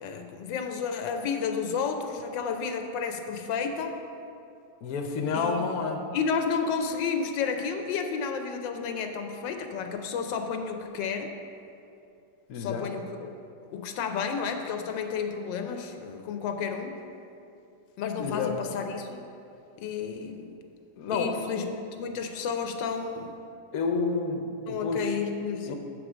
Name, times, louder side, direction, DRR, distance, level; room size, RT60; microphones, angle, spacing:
voice 1, 0.0-4.0 5.3-5.8 6.1-11.3 12.5-13.3 13.7-16.9 18.0-19.2 19.8-20.6 21.1-23.4 24.7-25.7, left 6 dB, 85° left, 5 dB, 1.3 m, -31 dB
voice 2, 4.8-6.1 12.5-12.9 18.2-18.5 21.0-21.5 23.7-25.1 25.7-25.8, left 4 dB, 60° left, 3 dB, 1.1 m, -29 dB
7.8 x 5.0 x 6.0 m, 2.6 s
omnidirectional pair, 2.0 m